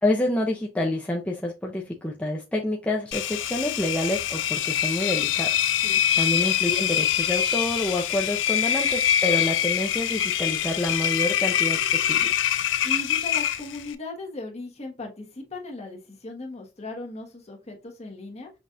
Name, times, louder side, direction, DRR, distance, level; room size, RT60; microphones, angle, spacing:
voice 1, 0.0-5.6 6.2-12.3, left 1 dB, 5° left, 0.5 m, -28 dB
Engine, 3.1-13.9, left 10 dB, 85° left, 0.4 m, -24 dB
voice 2, 12.8-18.5, left 2 dB, 35° left, 1.2 m, -37 dB
6.0 x 2.5 x 2.5 m
head